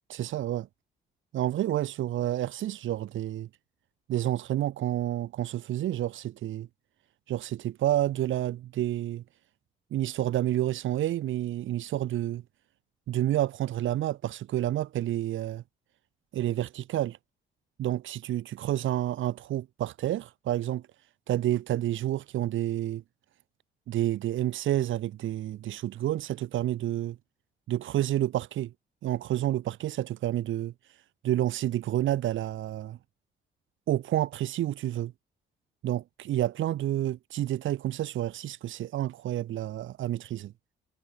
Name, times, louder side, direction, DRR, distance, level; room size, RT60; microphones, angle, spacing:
voice 1, 0.1-0.7 1.3-3.5 4.1-6.7 7.3-9.2 9.9-12.4 13.1-15.6 16.3-17.2 17.8-20.8 21.3-23.0 23.9-27.2 27.7-28.7 29.0-30.7 31.2-33.0 33.9-35.1 35.8-40.5, right 13 dB, 80° right, 2.9 m, -29 dB
cardioid pair, 90°, 20 cm